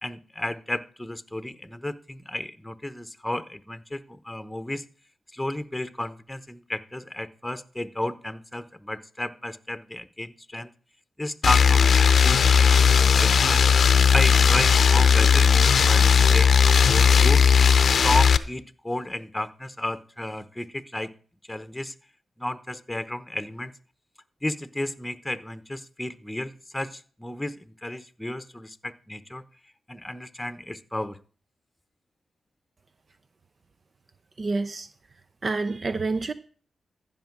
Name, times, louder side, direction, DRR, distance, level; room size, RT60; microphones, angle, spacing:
voice 1, 0.0-4.8 5.3-10.7 11.2-13.7 14.1-17.4 18.0-21.1 21.5-21.9 22.4-23.7 24.4-29.4 29.9-31.2, left 1 dB, 10° left, 1.0 m, -32 dB
sound 1, 11.4-18.4, left 6 dB, 70° left, 0.6 m, -17 dB
voice 2, 34.4-34.9 35.4-36.3, right 3 dB, 50° right, 0.7 m, -28 dB
14.5 x 5.5 x 6.0 m
supercardioid pair, 45°, 0 cm